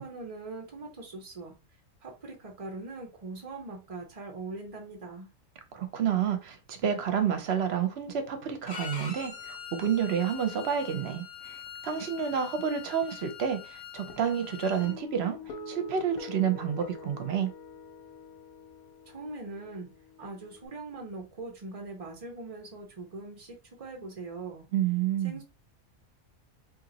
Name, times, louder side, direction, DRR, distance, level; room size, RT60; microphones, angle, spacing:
voice 1, 0.0-1.5 2.0-5.3 19.1-19.9 20.2-24.6 25.2-25.4, right 3 dB, 40° right, 0.5 m, -41 dB
voice 2, 5.7-17.5 24.7-25.4, right 8 dB, 55° right, 0.9 m, -29 dB
Bowed string instrument, 8.7-14.9, left 7 dB, 50° left, 0.8 m, -44 dB
Guitar, 14.1-20.7, left 3 dB, 85° left, 1.3 m, -45 dB
2.8 x 2.8 x 3.9 m
omnidirectional pair, 1.4 m